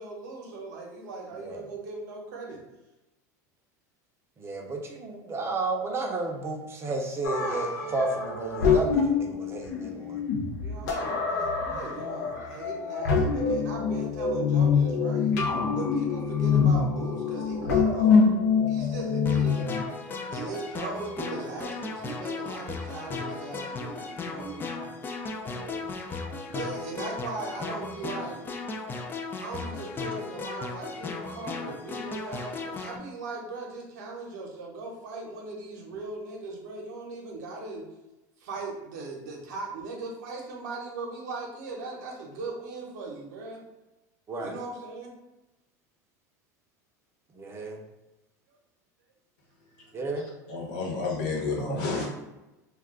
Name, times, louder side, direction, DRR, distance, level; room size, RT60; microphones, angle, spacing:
voice 1, 0.0-2.6 10.6-15.3 15.7-18.4 18.7-19.7 20.3-24.7 25.0-25.1 26.5-28.4 29.4-37.9 38.4-43.6 44.4-45.1, right 3 dB, 80° right, 0 dB, 0.8 m, -38 dB
voice 2, 4.4-10.2 25.5-25.9 44.3-44.6 47.3-47.8 49.9-50.3, right 2 dB, 25° right, 1 dB, 0.6 m, -32 dB
sound 1, 7.2-19.8, left 5 dB, 85° left, 0.6 m, -25 dB
sound 2, 19.3-33.0, left 4 dB, 20° left, 0.3 m, -36 dB
voice 3, 50.0-52.1, left 3 dB, 65° left, -2 dB, 1.0 m, -31 dB
2.3 x 2.3 x 3.6 m, 1.0 s
supercardioid pair, 110°, 9 cm